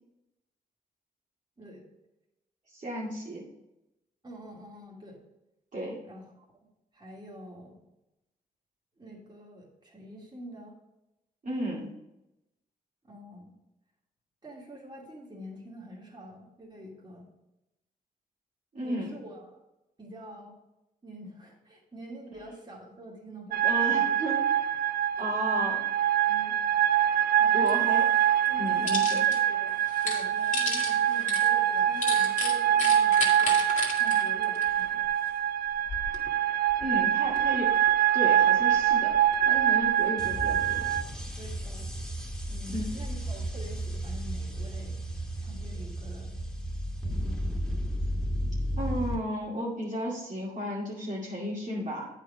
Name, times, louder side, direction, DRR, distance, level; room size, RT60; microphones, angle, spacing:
voice 1, 2.7-3.4 5.7-6.0 11.4-11.9 18.7-19.1 23.6-24.4 25.2-25.8 27.5-28.0 28.6-29.2 36.8-37.7 38.1-39.2 39.5-40.8 42.7-42.8 48.8-52.1, equal, 50° right, -5 dB, 2.3 m, -33 dB
voice 2, 4.2-5.2 6.0-6.7 6.9-7.8 9.0-10.8 13.0-13.5 14.4-17.3 18.8-19.6 20.0-20.5 21.0-24.2 25.2-25.3 26.3-26.6 27.4-27.9 28.5-29.8 30.0-33.6 34.0-35.1 41.4-41.9 42.5-45.0 45.4-46.4 47.0-47.6, equal, 30° right, -3 dB, 2.6 m, -46 dB
sound 1, 23.5-41.0, right 11 dB, 75° right, 0.4 m, -25 dB
sound 2, 27.7-27.8 28.1-29.4 29.7-35.3 35.7-36.3 36.7-37.9 38.5-40.0, left 3 dB, 50° left, 2.2 m, -34 dB
sound 3, 40.2-49.1, equal, 5° left, 2.3 m, -33 dB
8.5 x 5.1 x 5.0 m, 0.93 s
cardioid pair, 65°, 16 cm